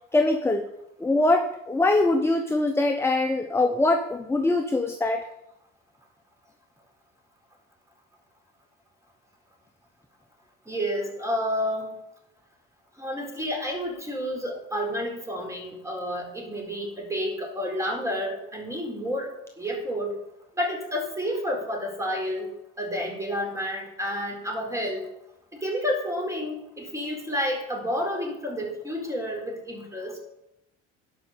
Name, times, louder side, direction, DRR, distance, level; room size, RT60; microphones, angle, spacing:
voice 1, 0.1-0.7 1.0-5.3, left 2 dB, 10° left, 6 dB, 0.8 m, -23 dB
voice 2, 10.7-11.9 13.0-20.1 20.6-22.5 22.8-25.1 25.5-30.2, equal, 10° right, 0 dB, 4.1 m, -30 dB
11.0 x 5.4 x 6.9 m, 0.84 s
supercardioid pair, 85°, 29 cm